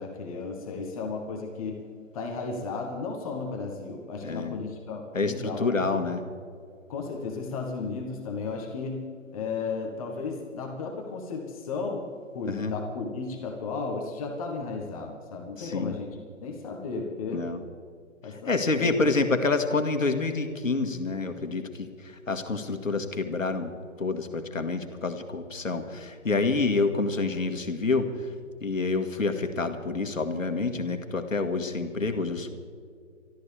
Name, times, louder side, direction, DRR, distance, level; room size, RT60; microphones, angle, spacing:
voice 1, 0.0-1.8 2.1-5.6 6.9-9.1 9.3-12.0 12.3-17.4 18.2-19.0, left 4 dB, 30° left, 1 dB, 1.4 m, -34 dB
voice 2, 4.2-4.6 5.1-6.2 12.5-12.7 15.6-15.9 17.3-17.6 18.3-23.7 24.0-28.3 28.6-32.5, left 3 dB, 85° left, 6 dB, 1.8 m, -28 dB
24.5 x 13.5 x 3.4 m, 2.3 s
figure-of-eight pair, 145°, 38 cm